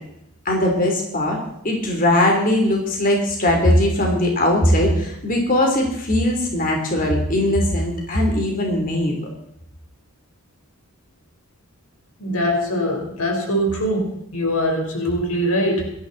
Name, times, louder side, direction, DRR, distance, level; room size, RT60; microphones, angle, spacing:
voice 1, 0.4-1.4 1.6-9.3, left 1 dB, 40° left, 1 dB, 3.2 m, -19 dB
voice 2, 12.2-15.9, equal, 90° left, 2 dB, 4.4 m, -22 dB
18.0 x 13.0 x 4.1 m, 0.77 s
head